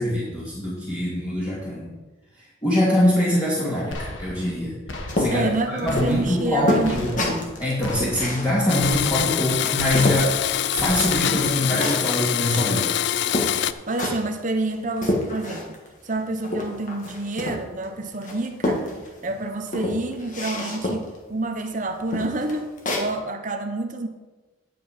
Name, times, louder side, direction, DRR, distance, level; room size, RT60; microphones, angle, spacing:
voice 1, 0.0-1.9 2.6-7.3 7.6-10.3 10.7-12.9, left 1 dB, 20° left, -9 dB, 2.4 m, -24 dB
sound 1, 3.9-4.6 4.9-5.6 5.9-6.6 6.8-7.5 7.8-8.5 8.8-9.5 9.8-10.5 10.8-11.5, left 1 dB, 75° left, 1.5 m, -36 dB
sound 2, 5.1-10.3 10.7-12.2 12.9-13.0 13.3-14.3 14.7-17.8 18.2-19.3 19.7-21.2 21.6-21.7 22.1-23.1, left 1 dB, 40° left, 1.8 m, -28 dB
voice 2, 5.3-7.2 13.3-15.8 16.0-18.9 19.2-24.1, right 2 dB, 40° right, 6 dB, 0.9 m, -28 dB
Domestic sounds home sounds, 8.7-13.7, left 11 dB, 55° left, 0.4 m, -24 dB
10.5 x 7.7 x 5.1 m, 1.2 s
head